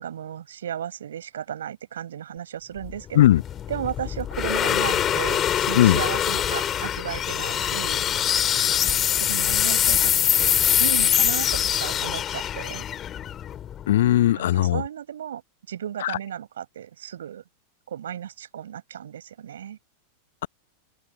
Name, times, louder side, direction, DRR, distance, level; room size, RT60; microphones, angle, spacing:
voice 1, 0.0-3.2 3.7-8.1 8.8-10.5 10.8-12.8 14.3-15.4 15.7-17.4 17.9-19.8, right 10 dB, 65° right, 5.1 m, -34 dB
sound 1, 2.8-14.1, left 10 dB, 25° left, 3.4 m, -24 dB
voice 2, 13.9-14.8 16.0-16.2, left 13 dB, 60° left, 1.1 m, -18 dB
open air
figure-of-eight pair, 90°, 0 cm